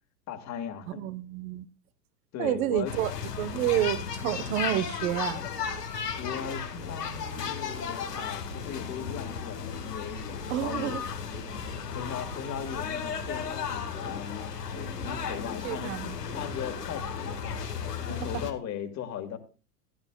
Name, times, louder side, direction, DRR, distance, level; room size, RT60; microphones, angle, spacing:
voice 1, 0.3-1.0 2.3-2.9 6.2-11.0 11.4-14.2 14.6-17.6 18.1-19.4, left 8 dB, 35° left, 2.0 m, -38 dB
voice 2, 0.9-1.7 2.4-3.1 3.4-5.4 10.5-11.0 15.6-16.2 18.2-18.5, right 13 dB, 60° right, 1.2 m, -29 dB
sound 1, 2.9-18.5, left 6 dB, 90° left, 1.8 m, -35 dB
16.5 x 11.0 x 2.3 m
hypercardioid pair, 95°, 46 cm